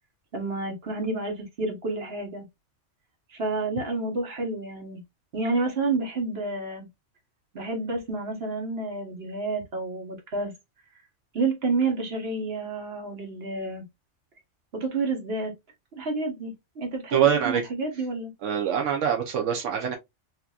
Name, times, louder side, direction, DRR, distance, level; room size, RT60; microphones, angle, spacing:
voice 1, 0.3-2.4 3.3-5.0 5.3-6.9 7.5-10.5 11.3-13.8 14.7-15.5 15.9-18.3, right 3 dB, 55° right, 1.5 m, -29 dB
voice 2, 17.1-17.6 18.4-20.0, right 8 dB, 80° right, 1.0 m, -24 dB
4.2 x 2.8 x 2.3 m
omnidirectional pair, 1.2 m